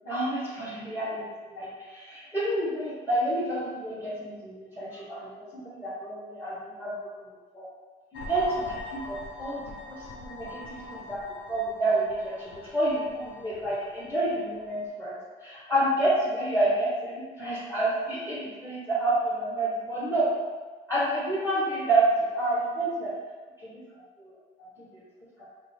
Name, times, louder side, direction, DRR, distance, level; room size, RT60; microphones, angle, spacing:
voice 1, 0.1-6.9 7.5-7.7 8.1-9.6 9.9-15.2 15.4-20.3 20.9-22.0 22.3-23.1 23.6-23.8 24.2-24.3 24.8-25.0 25.4-25.5, right 2 dB, 15° left, -8 dB, 1.3 m, -29 dB
sound 1, 8.1-14.9, left 3 dB, 80° left, 0.7 m, -43 dB
5.2 x 2.1 x 4.2 m, 1.4 s
cardioid pair, 90°, 20 cm